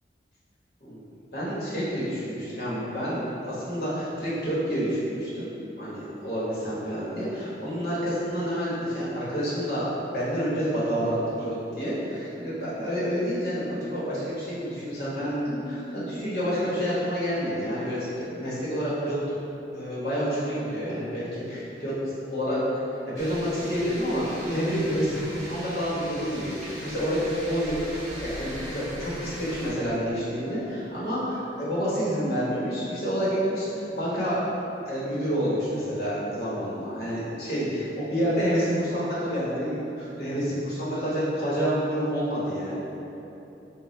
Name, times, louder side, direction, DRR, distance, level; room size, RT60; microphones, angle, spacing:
voice 1, 0.8-5.5 5.8-19.2 19.7-22.6 23.2-27.2 27.5-27.7 28.2-33.7 33.9-34.4 34.8-42.8, equal, 55° left, -9 dB, 1.1 m, -28 dB
sound 1, 23.1-29.7, equal, 40° right, 0.9 m, -40 dB
3.8 x 2.3 x 3.1 m, 3.0 s
head